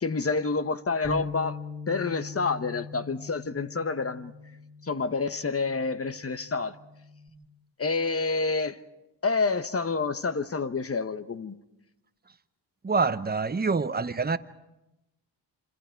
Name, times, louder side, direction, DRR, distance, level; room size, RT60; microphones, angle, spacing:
voice 1, 0.0-1.6 1.9-4.3 4.8-6.7 7.8-8.8 9.2-11.6, left 4 dB, 30° left, 1.2 m, -28 dB
Bass guitar, 1.0-7.3, left 3 dB, 10° left, 3.8 m, -42 dB
voice 2, 12.8-14.4, right 4 dB, 20° right, 0.9 m, -26 dB
27.0 x 26.5 x 4.6 m
cardioid pair, 70°, 44 cm